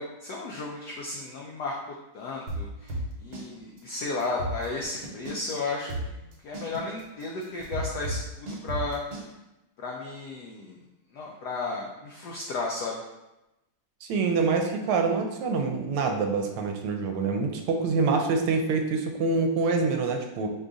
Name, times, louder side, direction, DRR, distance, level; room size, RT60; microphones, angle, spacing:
voice 1, 0.0-1.8 2.1-9.0 9.8-10.8 11.1-13.0, left 3 dB, 90° left, -1 dB, 0.8 m, -34 dB
sound 1, 2.5-3.5 3.8-3.9 4.2-5.5 5.9-9.3, right 1 dB, 55° right, 1.4 m, -33 dB
voice 2, 14.0-20.5, right 4 dB, 80° right, 4 dB, 1.5 m, -26 dB
5.0 x 2.4 x 3.8 m, 0.96 s
omnidirectional pair, 2.4 m